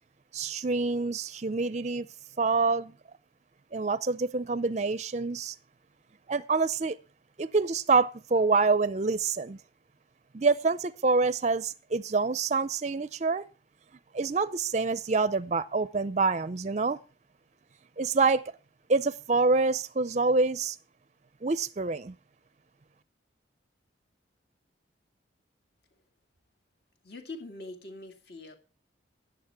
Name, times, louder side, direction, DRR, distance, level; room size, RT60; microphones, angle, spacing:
voice 1, 0.3-2.1 2.4-2.9 3.7-5.6 6.3-7.0 7.4-9.6 10.3-13.4 14.1-17.0 18.0-18.4 18.9-20.8 21.4-22.1, right 4 dB, 35° right, 0.5 m, -26 dB
voice 2, 27.0-28.6, left 2 dB, 55° left, 2.3 m, -43 dB
13.5 x 9.4 x 4.6 m
head